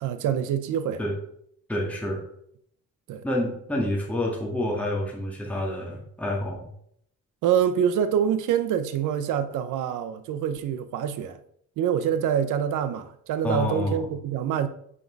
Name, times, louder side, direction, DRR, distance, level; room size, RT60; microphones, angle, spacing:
voice 1, 0.0-1.0 3.1-3.2 7.4-11.4 11.8-14.7, right 9 dB, 85° right, 0.8 m, -25 dB
voice 2, 1.7-2.2 3.2-6.7 13.4-14.1, left 1 dB, 5° left, 1.9 m, -28 dB
6.1 x 5.4 x 4.6 m
cardioid pair, 90°, 30 cm